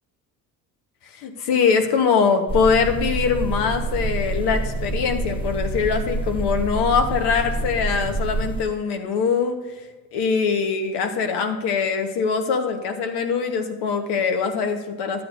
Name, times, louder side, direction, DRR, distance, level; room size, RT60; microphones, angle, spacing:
voice 1, 1.1-9.6 10.1-15.2, left 5 dB, 80° left, 5 dB, 1.2 m, -22 dB
sound 1, 2.5-8.6, right 2 dB, 15° left, 1.1 m, -27 dB
12.5 x 8.4 x 2.6 m, 1.2 s
supercardioid pair, 70°, 39 cm